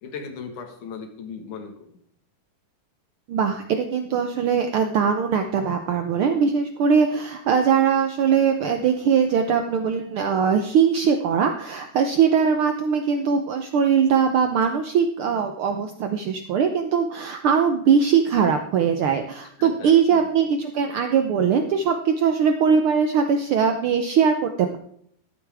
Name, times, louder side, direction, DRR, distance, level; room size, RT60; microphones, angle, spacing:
voice 1, 0.0-1.9 19.6-20.3, left 5 dB, 80° left, 4 dB, 3.1 m, -37 dB
voice 2, 3.3-24.8, right 6 dB, 80° right, 6 dB, 1.2 m, -21 dB
13.5 x 12.0 x 3.5 m, 0.67 s
omnidirectional pair, 3.5 m